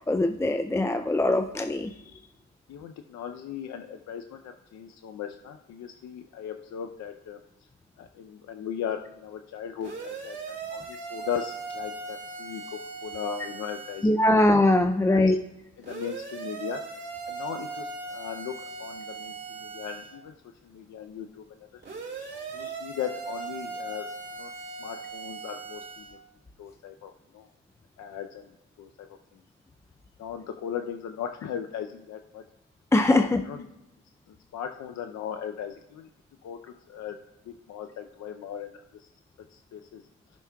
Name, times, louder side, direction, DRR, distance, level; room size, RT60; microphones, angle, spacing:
voice 1, 0.1-1.9 14.0-15.4 32.9-33.4, left 2 dB, 10° left, 7 dB, 0.3 m, -22 dB
voice 2, 2.7-7.4 8.0-14.4 15.0-15.4 15.8-16.8 17.3-20.3 20.6-21.4 22.5-24.5 24.8-26.2 26.6-27.5 28.0-29.1 30.2-32.4 33.2-33.7 34.3-36.1 36.4-37.2 37.5-39.1 39.5-40.0, left 8 dB, 65° left, 6 dB, 0.6 m, -38 dB
sound 1, 9.8-14.1 15.8-20.1 21.8-26.1, right 4 dB, 35° right, 2.8 m, -39 dB
16.0 x 6.1 x 2.3 m, 0.92 s
cardioid pair, 90°, 30 cm